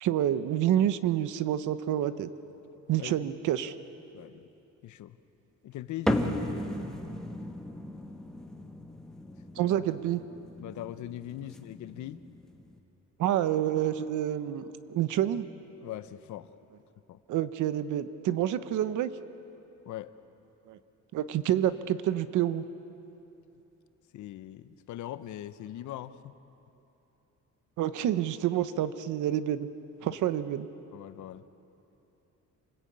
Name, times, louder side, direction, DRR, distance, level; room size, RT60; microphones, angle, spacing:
voice 1, 0.0-2.3 2.9-3.7 9.6-10.2 13.2-14.6 14.9-15.5 17.3-19.1 21.1-22.6 27.8-29.7 30.0-30.7, right 11 dB, 80° right, 12 dB, 1.0 m, -28 dB
voice 2, 3.0-3.3 4.1-4.5 4.8-5.2 5.6-6.4 9.5-9.8 10.6-12.2 15.8-16.5 17.1-17.2 19.8-20.1 24.1-26.3 30.0-30.2 30.9-31.5, left 12 dB, 70° left, 12 dB, 0.9 m, -41 dB
sound 1, 6.1-12.8, left 1 dB, ahead, 1.3 m, -36 dB
27.5 x 19.5 x 8.7 m, 3.0 s
cardioid pair, 155°, 30 cm